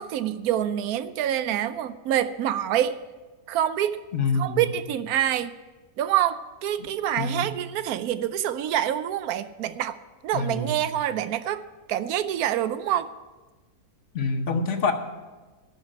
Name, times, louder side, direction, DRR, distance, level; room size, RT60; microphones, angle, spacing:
voice 1, 0.0-3.0 3.5-4.0 4.3-5.5 6.0-10.0 10.2-11.6 11.9-13.1, right 11 dB, 75° right, 13 dB, 1.1 m, -26 dB
voice 2, 4.1-4.7 6.8-6.9 7.2-7.5 10.3-10.8 14.1-14.9, left 4 dB, 55° left, 6 dB, 1.2 m, -26 dB
11.5 x 5.8 x 8.9 m, 1.2 s
omnidirectional pair, 1.6 m